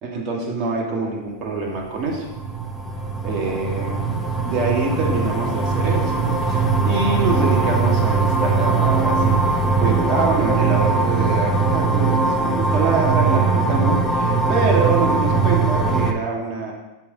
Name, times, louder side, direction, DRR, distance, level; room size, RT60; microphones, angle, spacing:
voice 1, 0.0-2.3 3.2-4.1 4.4-16.7, right 3 dB, 40° right, -2 dB, 1.6 m, -25 dB
sound 1, 1.7-16.1, right 4 dB, 5° left, 0.8 m, -20 dB
7.0 x 3.7 x 4.9 m, 1.0 s
hypercardioid pair, 115°, 0 cm